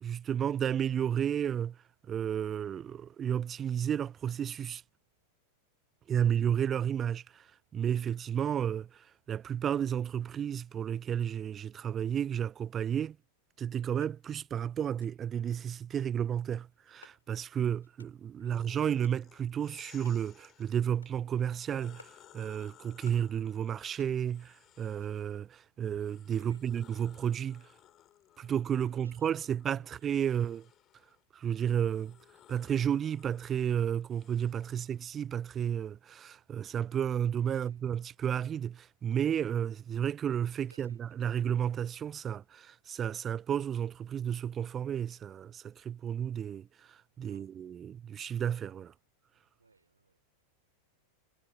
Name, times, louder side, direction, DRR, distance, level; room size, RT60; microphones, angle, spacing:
voice 1, 0.0-1.8 2.1-4.8 6.1-7.5 7.7-13.2 13.6-27.7 28.4-30.7 31.3-32.2 32.5-48.9, right 9 dB, 25° right, 0.3 m, -32 dB
sound 1, 13.8-14.2 14.8-15.1 15.8-16.1 16.8-17.5 17.8-18.2 18.8-19.2 19.8-20.3 20.8-21.2 21.8-22.2 22.8-23.4 23.8-24.5 24.8-25.4, left 5 dB, 75° left, 6.6 m, -61 dB
sound 2, 18.5-20.7 21.3-25.4 25.9-35.0, left 12 dB, 30° left, 3.8 m, -60 dB
voice 2, 26.3-26.7 28.8-29.9 30.2-30.4 37.5-37.8 40.7-41.3 47.2-47.5 49.6-50.4, right 4 dB, 80° right, 3.1 m, -63 dB
figure-of-eight pair, 90°, 0 cm